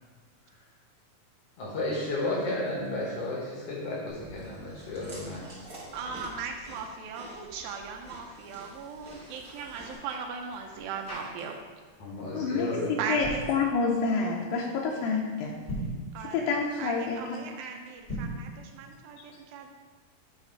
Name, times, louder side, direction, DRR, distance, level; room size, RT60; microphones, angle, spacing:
voice 1, 1.6-5.5 12.0-12.9, left 2 dB, 65° left, -3 dB, 1.6 m, -32 dB
Chewing mastication, 4.1-9.9, right 1 dB, 45° right, 1.1 m, -48 dB
voice 2, 5.9-11.6 13.0-13.5 16.1-19.8, right 5 dB, 90° right, 3 dB, 2.5 m, -38 dB
sound 1, 9.0-11.8 12.1-12.4 13.0-13.5 15.5-16.1 18.0-18.5, right 1 dB, 30° left, 1.1 m, -39 dB
voice 3, 12.3-15.6 16.3-17.4, left 4 dB, 85° left, -1 dB, 2.4 m, -28 dB
9.7 x 3.2 x 4.5 m, 1.5 s
omnidirectional pair, 4.1 m